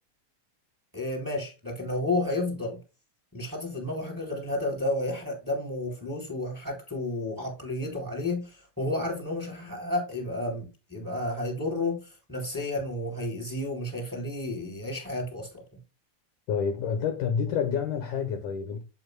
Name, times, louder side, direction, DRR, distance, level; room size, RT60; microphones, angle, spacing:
voice 1, 0.9-2.8 3.3-15.5, left 2 dB, 5° right, 3.5 m, -31 dB
voice 2, 16.5-18.8, left 7 dB, 65° left, 2.2 m, -28 dB
9.0 x 7.8 x 2.2 m
omnidirectional pair, 4.3 m